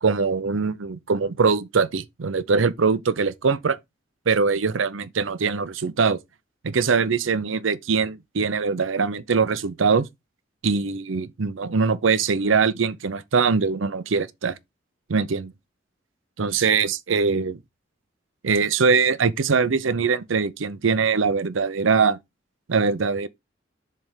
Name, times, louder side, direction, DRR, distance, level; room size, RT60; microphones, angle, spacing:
voice 1, 0.0-3.8 4.3-6.2 6.6-10.1 10.6-14.6 15.1-15.5 16.4-17.6 18.4-22.2 22.7-23.3, right 5 dB, 85° right, 0.6 m, -22 dB
7.2 x 3.4 x 4.9 m
head